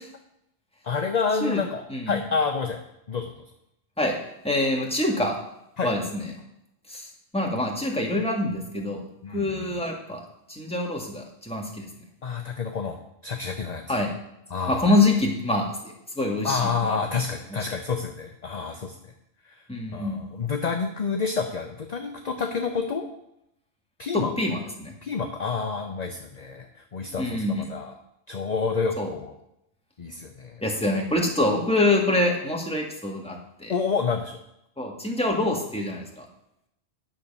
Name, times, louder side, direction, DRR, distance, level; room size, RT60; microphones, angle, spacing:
voice 1, 0.8-2.8 3.1-3.3 5.8-5.9 9.2-9.7 12.2-13.8 14.5-14.9 16.4-19.0 19.5-19.6 19.9-23.1 24.0-24.3 25.0-27.9 28.3-29.3 30.0-30.6 33.7-34.4, left 5 dB, 40° left, 4 dB, 0.8 m, -29 dB
voice 2, 1.9-2.2 4.0-4.1 4.4-5.4 5.8-6.3 6.9-9.1 9.3-10.2 10.5-11.9 13.9-14.1 14.7-17.0 19.7-20.2 24.1-24.9 27.2-27.7 29.0-29.1 30.6-33.7 34.8-36.3, left 2 dB, 5° left, -1 dB, 1.6 m, -25 dB
9.7 x 6.7 x 5.4 m, 0.81 s
omnidirectional pair, 1.2 m